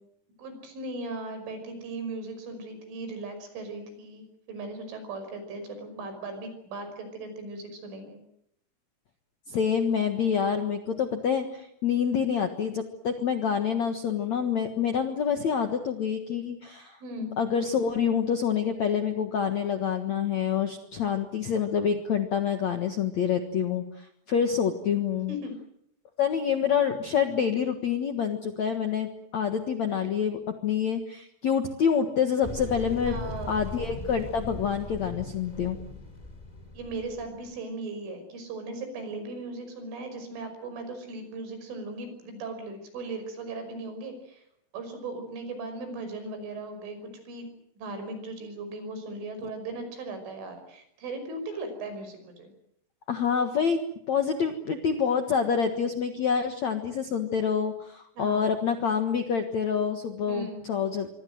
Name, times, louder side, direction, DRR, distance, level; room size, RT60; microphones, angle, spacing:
voice 1, 0.4-8.2 17.0-17.3 25.3-25.5 33.1-33.6 36.7-44.4 44.7-47.5 47.8-52.5 58.2-58.5 60.3-60.7, right 2 dB, 80° right, 8 dB, 7.8 m, -38 dB
voice 2, 9.5-17.0 17.4-25.3 26.2-33.2 33.5-35.8 53.1-53.8 54.1-61.1, left 7 dB, 65° left, 7 dB, 1.8 m, -27 dB
sound 1, 32.4-37.6, left 2 dB, 10° left, 3.2 m, -39 dB
26.0 x 24.0 x 7.9 m, 0.73 s
omnidirectional pair, 5.6 m